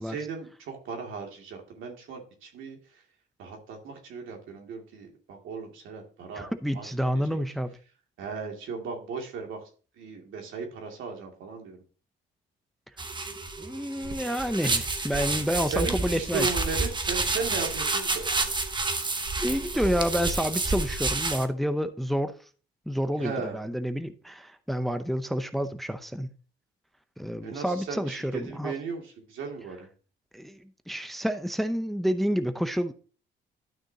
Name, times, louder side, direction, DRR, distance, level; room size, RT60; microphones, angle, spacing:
voice 1, 0.1-2.8 3.4-6.5 6.7-6.9 7.3-7.4 8.2-9.6 10.0-11.8 15.7-18.3 23.2-23.6 27.4-29.0 29.3-29.9, right 5 dB, 80° right, 2.4 m, -36 dB
voice 2, 6.3-7.7 13.6-16.5 19.4-22.4 22.9-26.3 27.2-28.7 30.3-32.9, equal, ahead, 0.6 m, -29 dB
sound 1, 13.0-21.4, right 3 dB, 25° right, 1.0 m, -29 dB
12.0 x 6.2 x 2.8 m
cardioid pair, 90°, 20 cm